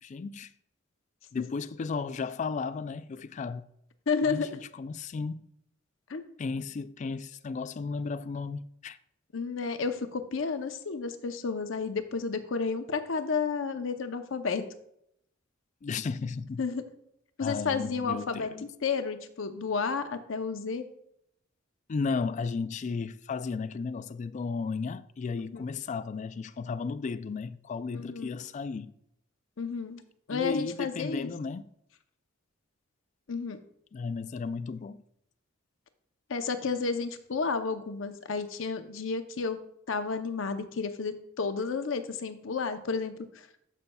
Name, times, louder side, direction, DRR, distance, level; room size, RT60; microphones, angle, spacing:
voice 1, 0.0-0.5 1.3-3.6 4.2-4.5 4.7-5.4 6.4-9.0 15.8-16.6 17.4-18.7 21.9-29.0 30.3-31.7 33.9-35.0, left 4 dB, 35° left, 0.3 m, -34 dB
voice 2, 4.1-4.5 6.1-6.2 9.3-14.6 16.6-16.9 17.4-20.8 25.5-25.7 27.9-28.3 29.6-30.0 30.3-31.3 33.3-33.6 36.3-39.6 39.9-43.1, left 5 dB, 70° left, 0.7 m, -31 dB
12.5 x 5.4 x 2.3 m
head